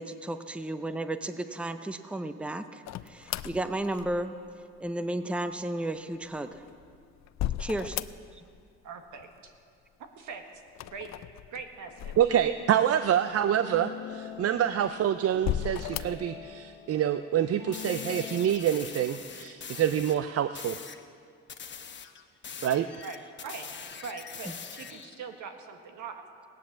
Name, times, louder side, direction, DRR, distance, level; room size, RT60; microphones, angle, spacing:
voice 1, 0.0-4.4 4.8-6.7 7.6-8.0 8.3-8.4, right 1 dB, 5° right, 10 dB, 0.6 m, -33 dB
sound 1, 2.9-4.5 6.4-8.6 8.8-9.6 10.7-12.8 13.4-13.5 14.3-14.9 15.3-16.3, left 12 dB, 65° left, 0.5 m, -36 dB
voice 2, 8.8-9.5 10.2-10.4 10.9-11.1 11.5-13.0 23.0-23.7 24.0-26.2, right 5 dB, 75° right, 5 dB, 1.6 m, -42 dB
voice 3, 12.2-20.8 22.6-22.9, right 10 dB, 50° right, 11 dB, 0.5 m, -26 dB
sound 2, 12.6-18.6, left 9 dB, 90° left, 1.0 m, -44 dB
sound 3, 17.7-20.2 20.5-21.0 21.5-25.2, left 6 dB, 40° left, 1.0 m, -43 dB
17.0 x 10.0 x 7.3 m, 2.3 s
cardioid pair, 90°, 30 cm